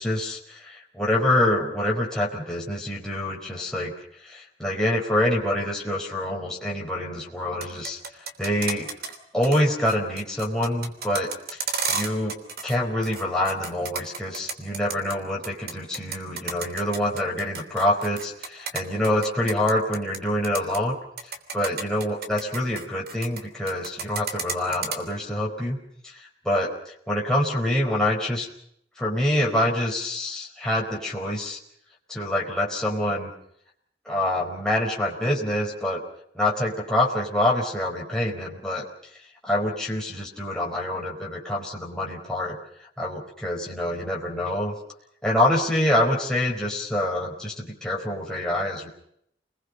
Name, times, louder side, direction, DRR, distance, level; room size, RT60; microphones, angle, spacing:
voice 1, 0.0-3.9 4.2-8.9 9.3-11.6 11.9-12.4 12.6-25.8 26.0-28.5 29.0-31.6 32.1-33.3 34.0-36.0 36.3-38.9 39.4-44.8 45.2-48.9, left 1 dB, 5° left, -3 dB, 4.7 m, -26 dB
sound 1, 7.5-9.2 9.4-9.6 9.9-12.8 13.0-15.1 15.4-20.2 20.4-20.8 21.2-23.4 23.7-25.0, right 5 dB, 60° right, 3.2 m, -31 dB
29.5 x 21.5 x 5.4 m, 0.70 s
head